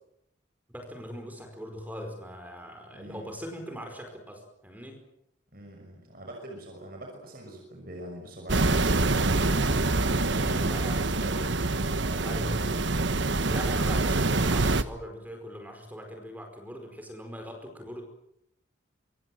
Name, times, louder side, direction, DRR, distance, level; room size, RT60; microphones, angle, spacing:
voice 1, 0.7-5.0 10.3-11.0 12.2-12.8 13.5-18.0, equal, 10° right, 4 dB, 4.9 m, -40 dB
voice 2, 2.9-3.2 5.5-9.3 9.9-11.4 11.9-12.8 13.7-14.0, right 1 dB, 45° right, 1 dB, 6.1 m, -42 dB
sound 1, 8.5-14.8, right 2 dB, 65° right, 1.3 m, -25 dB
26.0 x 25.5 x 7.7 m, 0.78 s
head